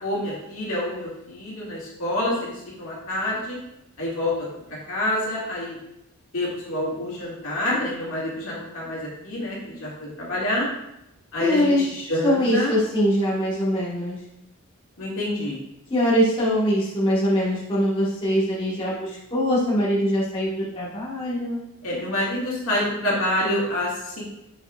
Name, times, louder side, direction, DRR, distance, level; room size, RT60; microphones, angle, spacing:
voice 1, 0.0-3.6 4.0-4.3 4.9-5.8 6.3-9.9 10.2-10.7 11.3-12.7 15.0-15.6 21.8-24.2, left 1 dB, 65° left, -6 dB, 2.2 m, -27 dB
voice 2, 11.4-11.8 12.2-14.2 15.9-21.6, equal, 25° left, -8 dB, 1.5 m, -22 dB
6.7 x 6.3 x 2.5 m, 0.84 s
head